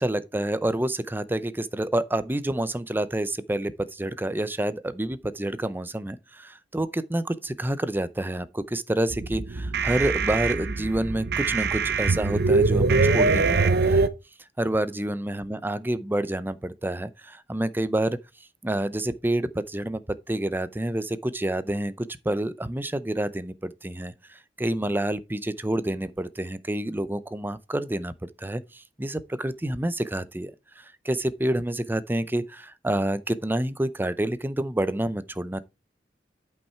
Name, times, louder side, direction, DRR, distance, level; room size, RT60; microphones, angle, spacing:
voice 1, 0.0-14.1 14.6-18.2 18.6-28.1 28.4-30.5 30.8-35.6, right 1 dB, 10° right, 0.5 m, -28 dB
sound 1, 9.1-14.1, right 3 dB, 60° right, 0.7 m, -23 dB
8.6 x 5.6 x 4.4 m
head